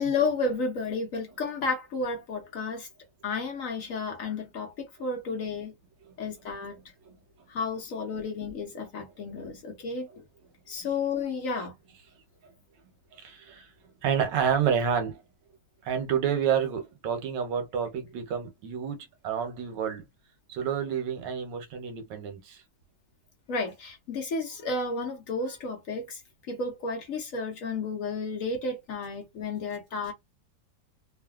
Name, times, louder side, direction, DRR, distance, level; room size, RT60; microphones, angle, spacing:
voice 1, 0.0-2.9 3.2-5.7 6.2-6.8 7.5-10.2 10.7-11.7 23.5-26.2 26.5-30.1, left 3 dB, 60° left, 1.0 m, -32 dB
voice 2, 6.7-7.2 8.1-8.2 12.4-12.5 12.8-13.7 14.0-15.2 15.8-20.0 20.5-22.6, right 8 dB, 85° right, 1.5 m, -30 dB
3.1 x 2.5 x 2.3 m
omnidirectional pair, 1.9 m